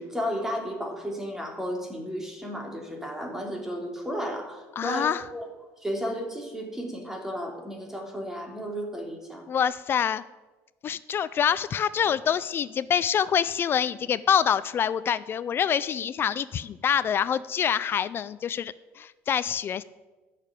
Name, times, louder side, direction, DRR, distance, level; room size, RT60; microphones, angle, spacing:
voice 1, 0.0-5.5 5.8-9.4, equal, 5° right, 2 dB, 2.9 m, -33 dB
voice 2, 4.8-5.3 9.5-10.2 10.8-19.8, left 8 dB, 40° left, 17 dB, 0.4 m, -26 dB
12.0 x 6.7 x 9.1 m, 1.2 s
cardioid pair, 110°, 6 cm